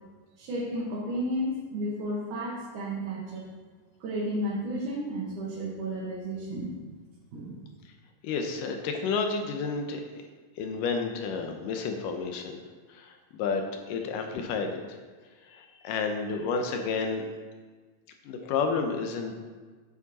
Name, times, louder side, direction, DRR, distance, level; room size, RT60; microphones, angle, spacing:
voice 1, 0.4-3.4 4.0-6.9 7.3-7.6, equal, 70° right, -5 dB, 2.7 m, -32 dB
voice 2, 8.2-10.0 10.6-12.6 12.9-13.6 13.9-15.0 15.4-17.3 18.3-19.3, left 5 dB, 75° left, 4 dB, 2.3 m, -31 dB
8.5 x 7.1 x 4.1 m, 1.4 s
omnidirectional pair, 3.9 m